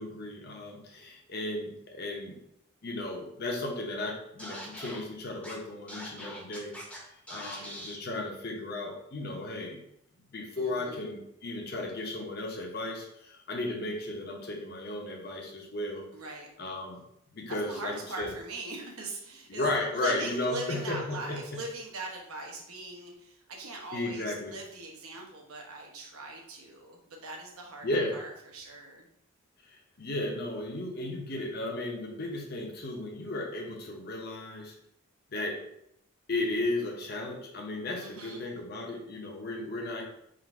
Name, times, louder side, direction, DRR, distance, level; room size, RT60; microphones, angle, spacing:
voice 1, 0.0-2.4 2.8-6.8 7.0-9.8 10.3-16.1 16.6-17.0 17.3-18.3 19.5-21.4 23.9-24.5 27.8-28.2 29.6-34.7 35.3-35.6 36.3-40.0, left 2 dB, 45° left, 1 dB, 0.7 m, -35 dB
Scratching (performance technique), 4.4-5.0 5.4-5.5 5.9-7.0 7.3-8.0, equal, 5° left, 0.7 m, -42 dB
voice 2, 7.4-7.9 10.6-11.0 16.1-16.5 17.5-27.9 28.1-29.1 38.0-38.4, right 2 dB, 80° right, 1 dB, 1.0 m, -41 dB
3.8 x 2.5 x 4.5 m, 0.76 s
head